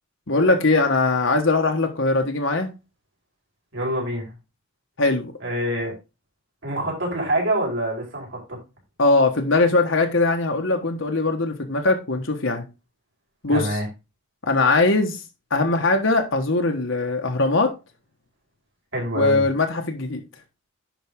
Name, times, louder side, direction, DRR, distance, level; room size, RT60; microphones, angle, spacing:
voice 1, 0.3-2.7 5.0-5.3 9.0-12.6 13.4-13.8 14.4-15.2 15.5-17.7 19.1-20.2, left 3 dB, 60° left, 1.3 m, -21 dB
voice 2, 3.7-4.3 5.4-5.9 6.6-8.6 13.5-13.9 18.9-19.5, right 1 dB, 55° right, 5.0 m, -26 dB
10.5 x 5.5 x 3.7 m
head